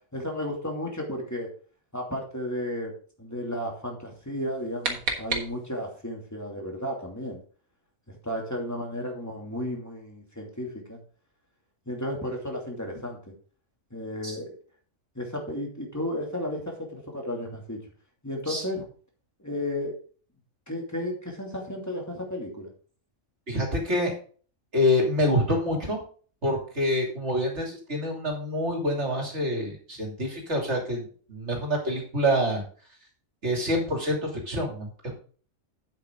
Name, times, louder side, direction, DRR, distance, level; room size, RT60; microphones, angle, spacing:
voice 1, 0.1-1.5 1.9-7.4 8.2-11.0 11.9-13.2 13.9-14.6 15.1-17.8 18.2-18.9 19.4-19.9 20.7-22.7, left 1 dB, 10° left, 0 dB, 2.7 m, -33 dB
sound 1, 4.3-6.0, right 4 dB, 90° right, 2.1 m, -33 dB
voice 2, 23.5-24.1 24.7-26.0 26.4-32.6 33.4-35.1, left 1 dB, 55° right, 0 dB, 3.2 m, -26 dB
8.6 x 8.2 x 3.9 m, 0.42 s
omnidirectional pair, 1.4 m